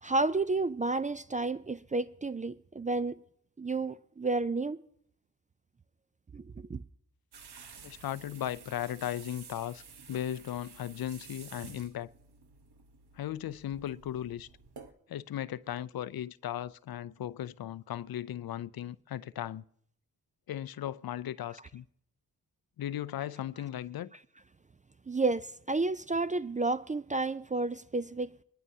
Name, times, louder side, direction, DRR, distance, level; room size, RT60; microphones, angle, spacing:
voice 1, 0.0-3.2 3.6-4.8 6.3-6.8 25.1-28.4, right 3 dB, 20° right, 0.4 m, -31 dB
sound 1, 7.3-14.9, right 5 dB, 65° right, 1.2 m, -52 dB
voice 2, 7.8-9.8 10.1-12.1 13.2-14.5 15.1-19.6 20.5-21.8 22.8-24.1, left 11 dB, 60° left, 0.5 m, -37 dB
24.0 x 11.0 x 2.8 m
cardioid pair, 45°, 41 cm